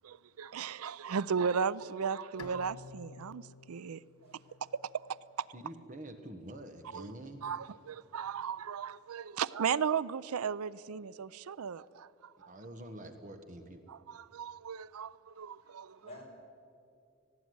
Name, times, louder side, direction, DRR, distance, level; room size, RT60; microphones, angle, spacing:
voice 1, 0.0-4.0 4.6-5.5 6.9-7.1 7.4-12.5 13.9-16.0, right 6 dB, 85° right, 0.5 m, -36 dB
Bowed string instrument, 2.4-5.6, left 4 dB, 90° left, 0.7 m, -52 dB
voice 2, 4.2-4.6 15.3-16.2, left 3 dB, 25° left, 5.2 m, -55 dB
voice 3, 5.5-7.4 12.5-13.8, right 1 dB, 35° right, 1.3 m, -46 dB
18.5 x 17.0 x 9.4 m
head